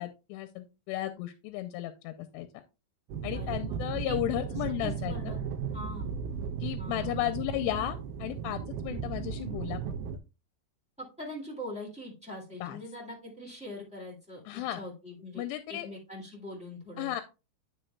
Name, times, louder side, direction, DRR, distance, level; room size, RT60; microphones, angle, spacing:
voice 1, 0.0-2.5 3.2-5.3 6.6-9.8 12.6-12.8 14.5-14.8 15.4-15.9 17.0-17.2, left 14 dB, 85° left, 9 dB, 2.7 m, -34 dB
sound 1, 3.1-10.2, right 6 dB, 80° right, 2.6 m, -35 dB
voice 2, 3.3-3.8 4.0-4.2 4.8-5.4 5.7-6.1 6.8-7.3 11.0-15.4 15.7-17.1, left 1 dB, 5° right, -4 dB, 0.6 m, -42 dB
10.0 x 6.3 x 2.2 m, 0.28 s
omnidirectional pair, 4.8 m